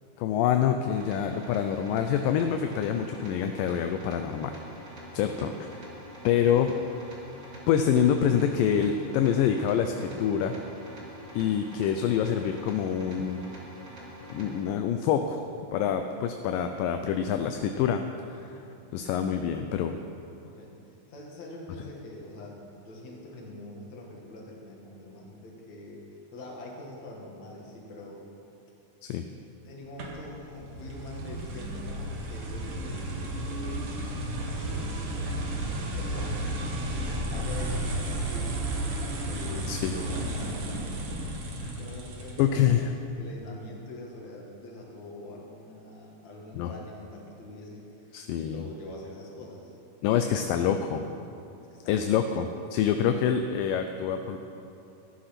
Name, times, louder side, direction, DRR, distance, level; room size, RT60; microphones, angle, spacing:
voice 1, 0.2-4.6 5.1-5.5 6.2-6.7 7.7-10.6 11.3-13.4 14.3-15.4 15.7-18.0 18.3-18.6 18.9-20.0 29.0-29.3 39.7-39.9 41.6-41.7 42.4-42.9 46.5-46.7 48.1-48.6 50.0-51.0 51.9-52.5 52.7-54.4, left 8 dB, 80° left, 6 dB, 2.2 m, -26 dB
sound 1, 0.9-14.6, equal, 30° right, 2.3 m, -46 dB
voice 2, 5.0-5.4 20.4-28.3 29.6-38.6 39.3-41.0 41.8-49.8 50.6-51.0 51.7-52.0, left 1 dB, 55° left, -2 dB, 3.1 m, -44 dB
sound 2, 30.0-42.7, right 1 dB, 65° right, 3.0 m, -33 dB
15.0 x 9.9 x 5.9 m, 2.8 s
omnidirectional pair, 4.0 m